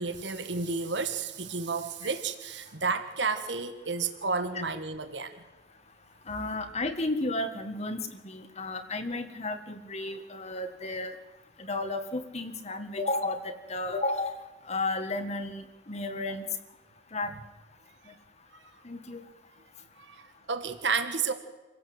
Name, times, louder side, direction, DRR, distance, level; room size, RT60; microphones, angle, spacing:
voice 1, 0.0-5.3 20.0-21.3, right 4 dB, 75° right, 8 dB, 1.6 m, -31 dB
voice 2, 6.3-11.1 11.6-14.3 14.6-16.5 17.1-17.3 18.1-18.2 18.8-19.2, left 2 dB, 35° left, 7 dB, 1.7 m, -33 dB
26.5 x 16.5 x 7.9 m, 1.2 s
head